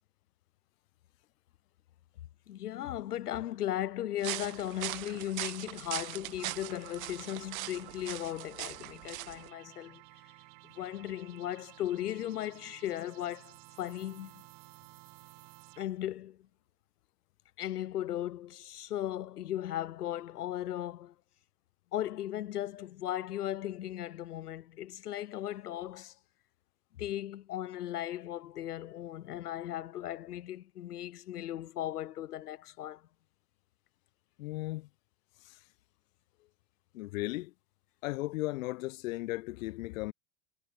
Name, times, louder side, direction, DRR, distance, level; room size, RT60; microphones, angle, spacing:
voice 1, 2.5-10.0 10.6-14.4 15.8-16.5 17.6-21.1 21.9-26.1 27.0-33.0, left 12 dB, 85° left, 4.9 m, -37 dB
sound 1, 4.2-9.5, right 18 dB, 65° right, 1.0 m, -40 dB
sound 2, 6.4-16.1, right 28 dB, 40° right, 3.0 m, -54 dB
voice 2, 34.4-34.9 35.4-35.6 36.9-37.5 38.0-40.1, left 19 dB, 60° left, 3.9 m, -36 dB
supercardioid pair, 145°, 45 cm